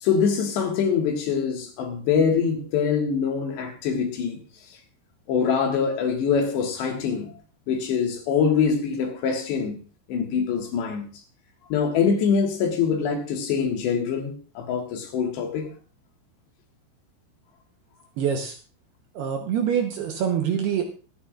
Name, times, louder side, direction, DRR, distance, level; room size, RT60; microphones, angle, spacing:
voice 1, 0.0-4.4 5.3-7.3 7.7-9.8 10.1-11.1 11.7-15.7, left 6 dB, 70° left, 3.7 m, -24 dB
voice 2, 18.2-18.6 19.1-20.8, right 8 dB, 70° right, 2.6 m, -25 dB
24.0 x 9.8 x 2.5 m
omnidirectional pair, 5.6 m